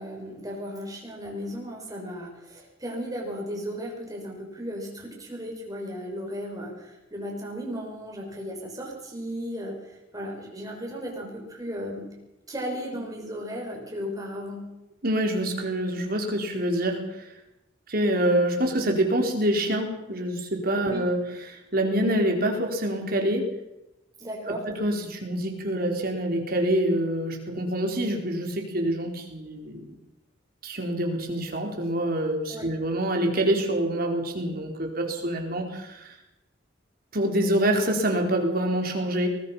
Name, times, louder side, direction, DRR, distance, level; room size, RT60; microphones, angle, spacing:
voice 1, 0.0-12.1 12.5-14.7 20.9-21.1 24.2-24.7 32.5-32.7, equal, 20° right, -1 dB, 6.6 m, -35 dB
voice 2, 15.0-17.3 17.9-23.5 24.7-29.9 30.6-36.1 37.1-39.3, right 1 dB, 50° right, 2 dB, 4.4 m, -26 dB
22.5 x 21.0 x 5.8 m, 0.92 s
head